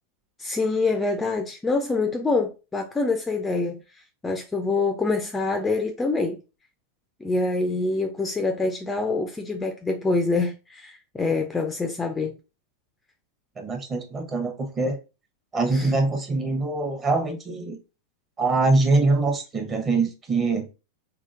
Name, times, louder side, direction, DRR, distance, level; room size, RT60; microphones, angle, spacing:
voice 1, 0.4-3.8 4.2-6.4 7.2-12.4 15.7-15.9, left 3 dB, 10° left, 0.4 m, -25 dB
voice 2, 13.6-15.0 15.5-17.8 18.4-20.7, right 3 dB, 25° right, 0.9 m, -23 dB
3.5 x 2.4 x 2.4 m
figure-of-eight pair, 90°, 0 cm